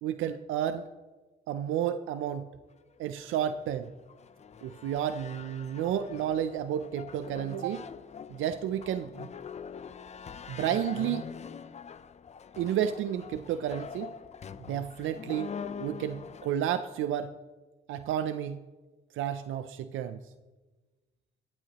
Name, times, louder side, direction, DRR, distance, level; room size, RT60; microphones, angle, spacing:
voice 1, 0.0-0.8 1.5-2.5 3.0-3.9 4.6-7.9 8.3-9.3 10.5-11.3 12.6-14.1 14.7-15.5 15.8-17.3 17.9-18.6 19.1-20.2, right 10 dB, 85° right, 11 dB, 0.5 m, -31 dB
sound 1, 3.0-16.5, left 6 dB, 35° left, 0.5 m, -44 dB
17.5 x 12.0 x 3.0 m, 1.3 s
cardioid pair, 90°, 20 cm